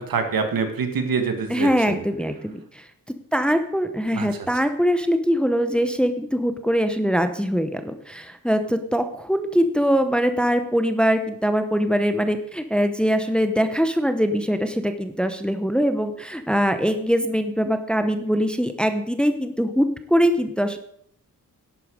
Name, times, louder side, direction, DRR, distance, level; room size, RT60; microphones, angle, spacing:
voice 1, 0.0-2.0 4.1-4.3, right 5 dB, 85° right, 6 dB, 1.9 m, -25 dB
voice 2, 1.5-2.9 3.3-20.8, equal, 5° left, 8 dB, 0.7 m, -22 dB
11.0 x 8.6 x 6.5 m, 0.66 s
wide cardioid pair, 175°, 34 cm